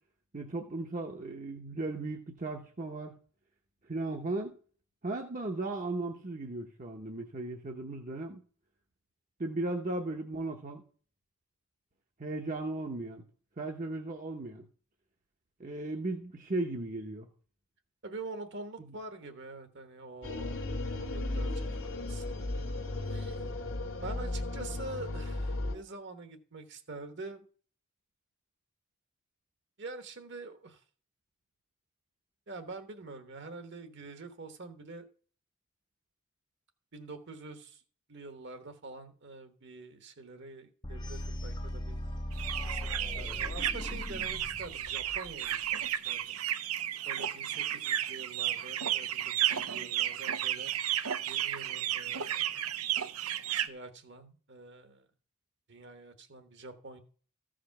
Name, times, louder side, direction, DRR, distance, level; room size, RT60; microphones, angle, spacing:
voice 1, 0.3-3.1 3.9-4.6 5.0-8.4 9.4-10.8 12.2-13.2 13.6-14.6 15.6-17.3, right 2 dB, 35° right, 0.9 m, -36 dB
voice 2, 18.0-22.6 23.1-23.4 24.0-27.4 29.8-30.8 32.5-35.1 36.9-37.8 38.1-42.1 42.6-46.4 47.0-50.7 51.3-52.5 53.5-55.0 55.7-57.0, right 3 dB, 55° right, 1.2 m, -46 dB
sound 1, 20.2-25.8, left 2 dB, 65° left, 1.6 m, -35 dB
sound 2, 40.8-45.7, left 1 dB, 20° left, 0.6 m, -39 dB
sound 3, 42.3-53.7, right 11 dB, 85° right, 0.6 m, -33 dB
14.0 x 5.0 x 5.8 m
head